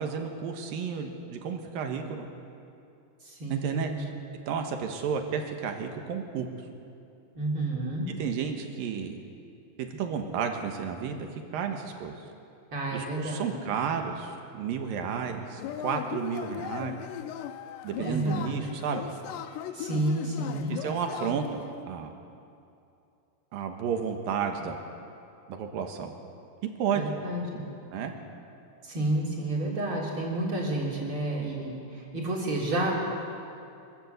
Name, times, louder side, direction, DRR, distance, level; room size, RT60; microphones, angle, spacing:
voice 1, 0.0-2.3 3.5-4.1 4.5-6.5 8.1-9.1 9.8-11.3 11.5-12.2 12.9-17.0 17.8-19.1 20.7-22.1 23.5-24.8 25.5-26.1 26.8-27.1 27.9-28.1, right 6 dB, 65° right, 4 dB, 2.6 m, -32 dB
voice 2, 3.2-4.0 7.4-8.1 12.7-13.6 17.9-18.6 19.7-20.8 26.9-27.6 28.8-33.3, right 1 dB, 30° right, -3 dB, 3.8 m, -30 dB
Yell / Cheering, 15.6-21.7, left 10 dB, 80° left, 2.6 m, -38 dB
24.5 x 14.0 x 8.1 m, 2.6 s
omnidirectional pair, 5.2 m